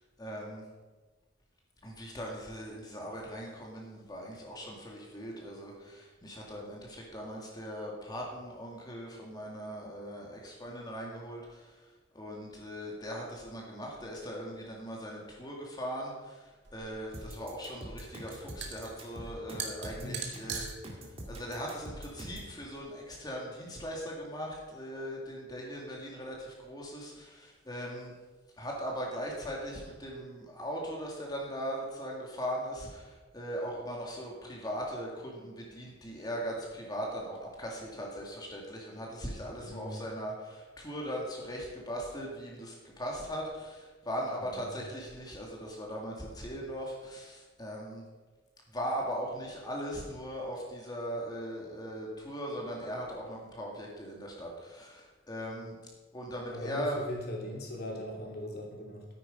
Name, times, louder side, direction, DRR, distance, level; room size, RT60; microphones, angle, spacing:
voice 1, 0.2-0.6 1.8-11.6 12.1-16.4 16.7-20.7 21.3-28.1 28.6-48.0 48.7-55.8 56.1-57.0, equal, 20° left, -2 dB, 2.1 m, -39 dB
sound 1, 16.6-22.8, right 6 dB, 65° right, 2.1 m, -43 dB
sound 2, 17.1-22.5, right 1 dB, 30° right, 2.1 m, -44 dB
voice 2, 19.8-20.5 39.6-40.1 44.4-44.8 56.5-59.1, left 1 dB, 55° left, -1 dB, 3.1 m, -40 dB
13.5 x 9.4 x 5.2 m, 1.3 s
head